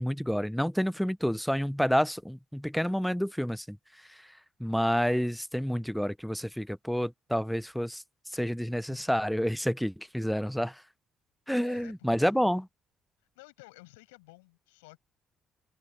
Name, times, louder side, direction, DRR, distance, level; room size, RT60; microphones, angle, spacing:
voice 1, 0.0-3.8 4.6-8.0 8.3-10.8 11.5-12.7, equal, ahead, 0.9 m, -29 dB
voice 2, 11.6-12.6 13.4-15.0, left 25 dB, 80° left, 6.9 m, -54 dB
open air
hypercardioid pair, 45°, 0 cm